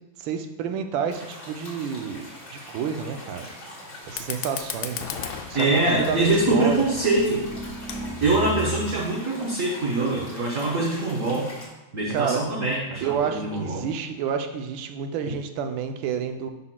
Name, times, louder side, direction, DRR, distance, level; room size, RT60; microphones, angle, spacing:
voice 1, 0.2-3.5 4.1-5.1 5.5-6.9 12.1-12.4 13.0-16.5, right 7 dB, 90° right, 6 dB, 1.4 m, -29 dB
sound 1, 1.1-11.7, left 1 dB, 55° left, 2.3 m, -42 dB
Fire, 4.0-9.0, left 8 dB, 75° left, 1.2 m, -37 dB
voice 2, 5.5-7.4 8.2-11.5 11.9-13.9, right 2 dB, 50° right, -3 dB, 1.1 m, -23 dB
sound 2, 7.3-9.1, equal, 5° left, 1.0 m, -34 dB
9.6 x 5.8 x 2.2 m, 1.0 s
omnidirectional pair, 2.0 m